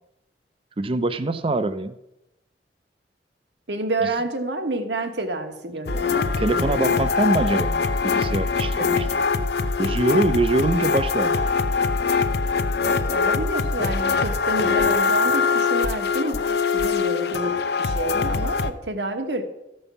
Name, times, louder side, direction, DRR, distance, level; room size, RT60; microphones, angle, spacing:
voice 1, 0.8-2.0 6.4-9.2 9.8-11.4, right 2 dB, 30° right, 12 dB, 0.5 m, -24 dB
voice 2, 3.7-6.1 6.5-7.1 13.1-19.4, right 2 dB, 75° right, 6 dB, 1.4 m, -29 dB
sound 1, 5.9-18.7, left 4 dB, 60° left, 0.6 m, -23 dB
14.0 x 5.4 x 7.0 m, 0.89 s
head